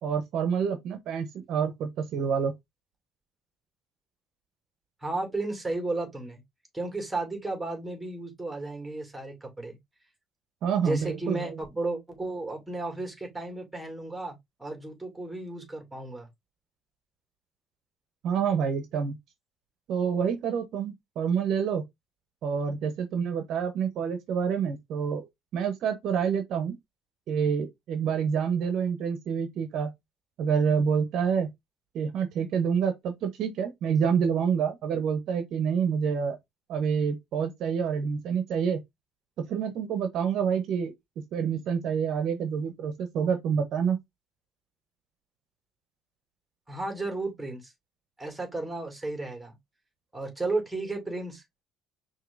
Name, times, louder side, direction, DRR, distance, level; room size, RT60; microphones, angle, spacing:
voice 1, 0.0-2.5 10.6-11.6 18.2-19.1 19.9-21.8 22.4-25.3 25.5-26.7 27.3-29.9 30.4-31.5 31.9-36.4 36.7-38.8 39.5-40.9 41.3-44.0, right 7 dB, 70° right, 0.8 m, -27 dB
voice 2, 5.0-6.4 6.7-9.8 10.8-16.3 46.7-47.6 48.2-49.6 50.1-51.4, right 2 dB, 10° right, 2.2 m, -33 dB
5.8 x 2.9 x 2.5 m
cardioid pair, 95°, 0 cm